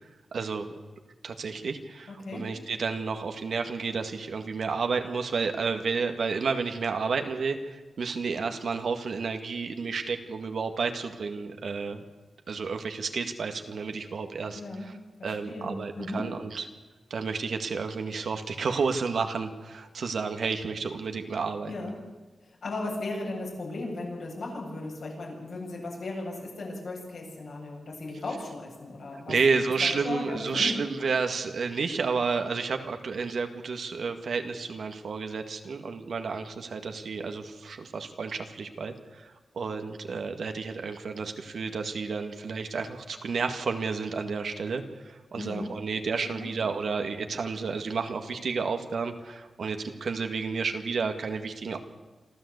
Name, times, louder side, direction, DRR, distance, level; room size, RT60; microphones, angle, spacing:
voice 1, 0.3-0.7 1.2-12.0 12.5-14.9 15.2-16.7 17.1-21.7 29.3-39.2 39.5-51.8, right 5 dB, 75° right, 6 dB, 2.0 m, -31 dB
voice 2, 2.1-2.5 14.5-14.9 15.2-16.3 21.6-22.0 22.6-29.4 29.8-30.7 45.3-45.7 46.4-46.5, left 2 dB, 75° left, -2 dB, 7.9 m, -36 dB
27.0 x 13.5 x 8.3 m, 1.2 s
wide cardioid pair, 80°, 0 cm